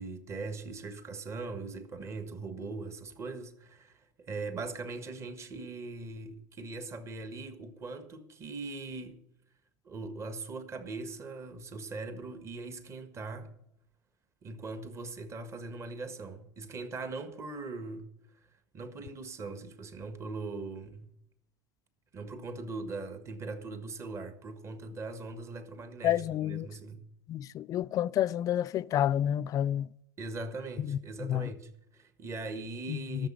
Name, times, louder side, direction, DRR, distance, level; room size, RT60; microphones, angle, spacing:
voice 1, 0.0-9.2 9.8-13.5 14.4-18.1 18.7-21.1 22.1-27.1 30.2-33.3, right 3 dB, 30° right, 1.6 m, -40 dB
voice 2, 26.0-26.7 27.3-29.9 30.8-31.5 32.9-33.3, left 11 dB, 40° left, 0.4 m, -30 dB
13.0 x 6.8 x 9.9 m
supercardioid pair, 105°, 9 cm